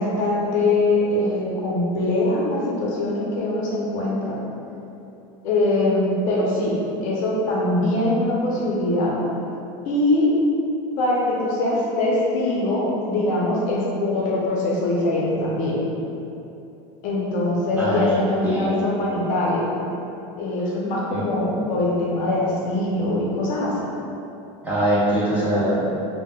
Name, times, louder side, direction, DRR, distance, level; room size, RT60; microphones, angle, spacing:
voice 1, 0.0-4.4 5.4-6.7 7.0-9.2 9.9-10.3 11.0-15.8 17.0-19.6 20.4-23.9, left 2 dB, 55° left, -4 dB, 0.6 m, -22 dB
voice 2, 17.8-18.7 21.1-21.2 24.6-25.9, right 1 dB, 10° right, -9 dB, 0.4 m, -22 dB
3.4 x 2.0 x 2.2 m, 2.8 s
supercardioid pair, 135°, 16 cm